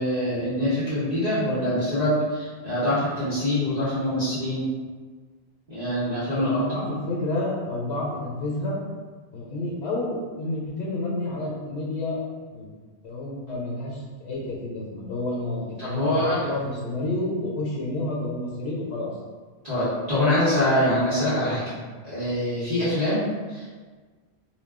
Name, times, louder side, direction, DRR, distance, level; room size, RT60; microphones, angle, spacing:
voice 1, 0.0-4.7 5.7-6.6 15.8-16.5 19.6-21.6 22.0-23.7, left 1 dB, 40° right, -12 dB, 0.9 m, -24 dB
voice 2, 6.3-8.8 9.3-12.2 12.5-12.7 13.0-19.1, left 2 dB, 90° left, -3 dB, 0.9 m, -30 dB
2.2 x 2.1 x 3.5 m, 1.5 s
omnidirectional pair, 1.1 m